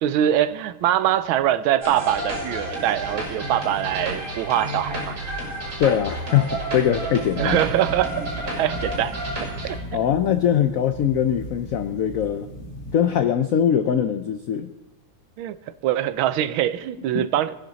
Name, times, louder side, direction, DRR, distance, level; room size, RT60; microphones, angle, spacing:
voice 1, 0.0-5.1 7.4-8.2 8.6-9.2 9.6-9.8 15.4-15.6 15.8-17.5, right 12 dB, 85° right, 15 dB, 1.5 m, -23 dB
sound 1, 1.8-9.8, right 1 dB, 60° right, 7.4 m, -30 dB
voice 2, 5.8-7.6 9.9-12.5 12.9-14.7 17.1-17.3, left 9 dB, 80° left, 9 dB, 0.7 m, -22 dB
sound 2, 7.3-12.9, equal, 35° left, 2.6 m, -37 dB
21.0 x 10.5 x 4.0 m, 1.1 s
omnidirectional pair, 2.2 m